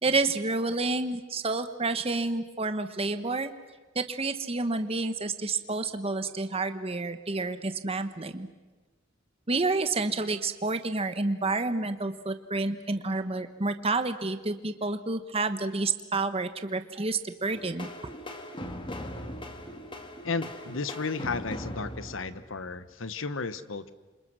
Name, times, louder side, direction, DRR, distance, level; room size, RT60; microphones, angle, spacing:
voice 1, 0.0-3.5 3.9-8.5 9.5-17.9, right 3 dB, 30° right, 9 dB, 1.2 m, -29 dB
sound 1, 17.5-23.0, left 1 dB, 25° left, 1.9 m, -40 dB
voice 2, 20.2-23.9, left 4 dB, 70° left, 13 dB, 1.1 m, -33 dB
29.0 x 26.5 x 6.3 m, 1.2 s
head